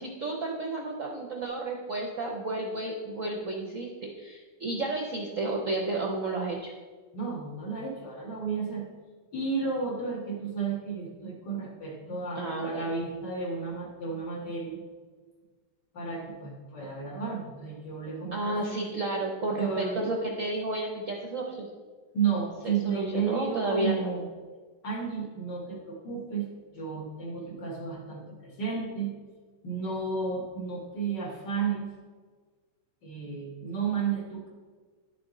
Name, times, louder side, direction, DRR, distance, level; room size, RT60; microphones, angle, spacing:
voice 1, 0.0-3.9 4.1-6.7 12.4-12.8 18.3-21.7 22.6-24.1, right 2 dB, 55° right, 0 dB, 0.9 m, -31 dB
voice 2, 7.1-8.8 9.3-14.8 15.9-18.8 19.6-20.1 22.1-24.3 24.8-26.5 26.7-29.1 29.6-31.9 33.0-34.5, right 5 dB, 55° left, -2 dB, 2.3 m, -32 dB
10.5 x 6.8 x 3.8 m, 1.5 s
omnidirectional pair, 2.4 m